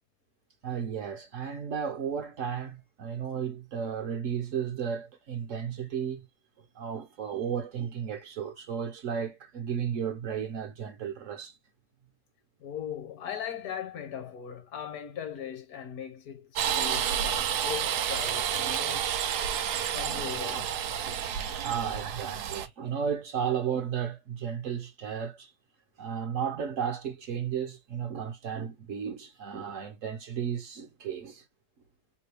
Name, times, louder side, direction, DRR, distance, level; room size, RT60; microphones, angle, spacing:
voice 1, 0.6-6.3 6.7-11.6 19.7-19.8 20.1-20.2 21.0-21.1 21.5-25.5 26.0-31.4, right 8 dB, 60° right, 1.0 m, -34 dB
voice 2, 12.6-19.1 19.9-20.7, left 9 dB, 70° left, 1.3 m, -39 dB
sound 1, 16.5-22.7, right 9 dB, 80° right, 1.2 m, -30 dB
3.0 x 2.7 x 3.2 m
omnidirectional pair, 1.7 m